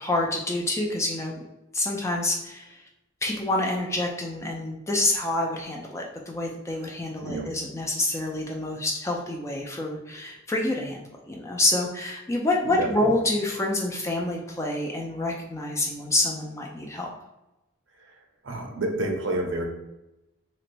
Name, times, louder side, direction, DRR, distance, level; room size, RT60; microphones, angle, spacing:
voice 1, 0.0-1.3 1.7-2.8 3.2-17.1, left 2 dB, 15° left, 0 dB, 0.3 m, -27 dB
voice 2, 12.6-13.1 18.0-18.2 18.4-19.7, right 1 dB, 65° right, 2 dB, 0.6 m, -29 dB
3.1 x 2.9 x 2.5 m, 0.96 s
head